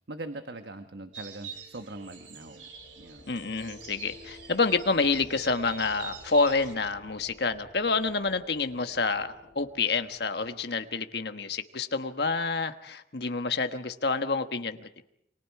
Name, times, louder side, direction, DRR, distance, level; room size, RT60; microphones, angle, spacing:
voice 1, 0.1-2.7 3.0-3.2, right 2 dB, 70° right, 7 dB, 1.2 m, -41 dB
sound 1, 0.9-11.5, left 1 dB, 85° left, 5.5 m, -54 dB
sound 2, 1.1-6.7, right 7 dB, 90° right, 3.2 m, -46 dB
voice 2, 3.3-15.0, left 4 dB, 65° left, 8 dB, 1.3 m, -28 dB
29.0 x 24.5 x 4.8 m, 0.73 s
head